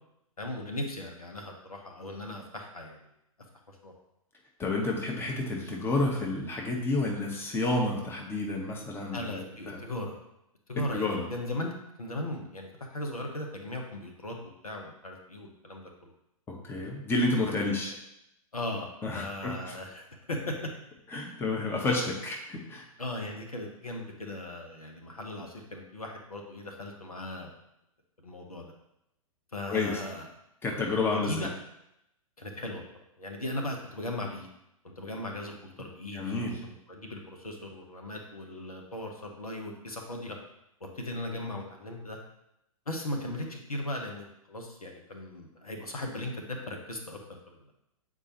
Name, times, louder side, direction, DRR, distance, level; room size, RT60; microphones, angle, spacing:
voice 1, 0.4-3.0 3.7-3.9 9.1-10.2 10.7-11.7 12.0-14.3 14.6-16.1 16.8-17.0 17.6-18.0 18.5-18.9 19.1-20.7 21.1-21.3 21.8-22.0 23.0-27.5 28.2-28.7 29.5-30.3 31.2-31.5 32.4-32.8 33.2-34.5 35.0-40.4 40.9-42.2 42.9-47.2 47.5-47.6, left 1 dB, 85° left, 2 dB, 1.2 m, -38 dB
voice 2, 4.6-9.8 10.9-11.2 16.5-17.9 19.0-19.7 21.1-22.8 29.7-30.0 30.6-31.5 36.1-36.6, left 2 dB, 10° left, 0 dB, 1.1 m, -30 dB
8.1 x 4.4 x 3.0 m, 0.84 s
figure-of-eight pair, 110°, 18 cm